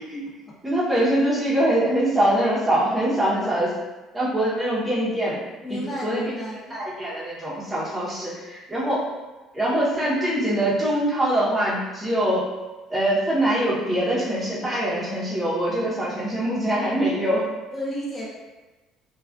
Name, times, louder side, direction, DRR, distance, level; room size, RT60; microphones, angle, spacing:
voice 1, 0.6-3.7 4.1-5.4 5.7-6.2 6.7-9.1 9.5-12.5 12.9-17.5, right 1 dB, 10° right, -9 dB, 0.8 m, -23 dB
voice 2, 5.6-6.8 17.7-18.3, equal, 25° left, -6 dB, 0.7 m, -32 dB
2.3 x 2.3 x 2.3 m, 1.2 s
cardioid pair, 120°, 0 cm